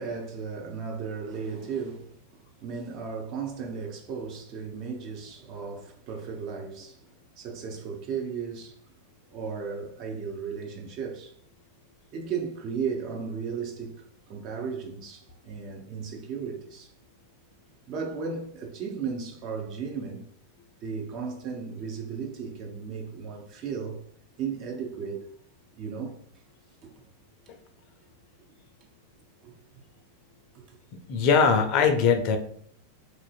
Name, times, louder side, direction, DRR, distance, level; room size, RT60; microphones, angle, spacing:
voice 1, 0.0-2.2 2.6-7.1 7.4-8.8 9.3-11.3 12.1-16.9 17.9-20.3 20.8-24.0 24.4-25.3 25.8-26.2 26.8-26.9 29.4-29.8 30.5-30.8, right 6 dB, 40° right, 0.5 m, -35 dB
voice 2, 31.1-32.4, left 6 dB, 40° left, 0.4 m, -21 dB
2.9 x 2.5 x 2.3 m
figure-of-eight pair, 90°, 0 cm